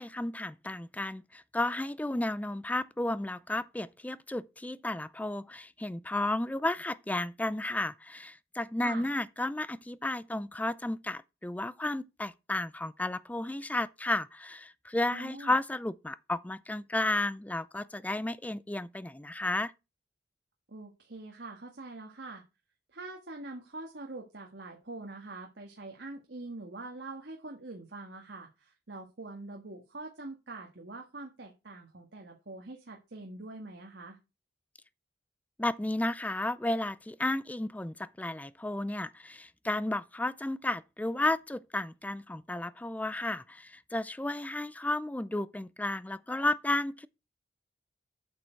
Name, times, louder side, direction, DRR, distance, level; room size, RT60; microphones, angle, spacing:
voice 1, 0.0-19.7 35.6-47.1, left 1 dB, 10° left, 0.4 m, -33 dB
voice 2, 15.1-15.5 20.7-22.4 22.9-34.2, right 2 dB, 70° right, 1.6 m, -44 dB
8.2 x 6.6 x 4.6 m
head